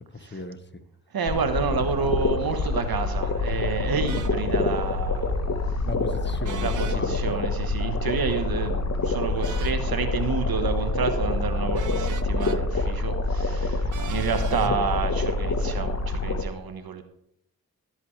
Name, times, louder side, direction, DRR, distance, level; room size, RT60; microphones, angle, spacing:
voice 1, 0.1-0.8 5.8-7.3 14.4-14.8, left 3 dB, 30° left, 9 dB, 1.4 m, -36 dB
voice 2, 1.1-5.8 6.6-17.0, right 5 dB, 70° right, 7 dB, 1.4 m, -29 dB
sound 1, 1.3-16.4, left 3 dB, 45° left, 1.3 m, -26 dB
sound 2, 4.1-4.3 6.4-7.0 9.4-9.8 11.7-12.6 13.9-14.7, right 8 dB, 55° right, 0.7 m, -39 dB
17.5 x 8.1 x 3.3 m, 0.74 s
cardioid pair, 50°, 37 cm